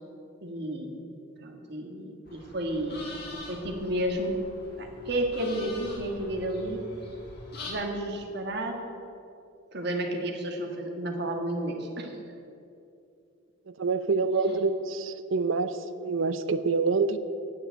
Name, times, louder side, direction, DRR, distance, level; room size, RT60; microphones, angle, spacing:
voice 1, 0.4-1.0 1.4-4.5 4.8-6.8 7.6-8.8 9.7-12.4, right 1 dB, 50° right, 3 dB, 1.5 m, -32 dB
sound 1, 2.3-7.7, left 2 dB, 50° left, 2.2 m, -43 dB
voice 2, 13.7-17.2, right 4 dB, 70° right, 12 dB, 0.6 m, -27 dB
9.3 x 7.4 x 9.0 m, 2.6 s
head